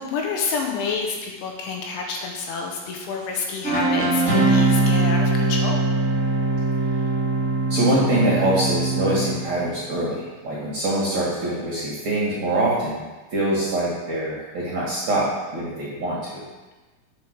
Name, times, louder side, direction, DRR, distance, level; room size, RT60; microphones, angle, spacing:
voice 1, 0.0-5.9, left 4 dB, 75° left, 1 dB, 3.4 m, -28 dB
sound 1, 3.6-9.6, right 2 dB, 25° right, 1.5 m, -21 dB
voice 2, 7.7-13.0 13.3-16.4, right 1 dB, 50° right, -6 dB, 2.4 m, -24 dB
9.1 x 7.1 x 6.6 m, 1.2 s
omnidirectional pair, 5.8 m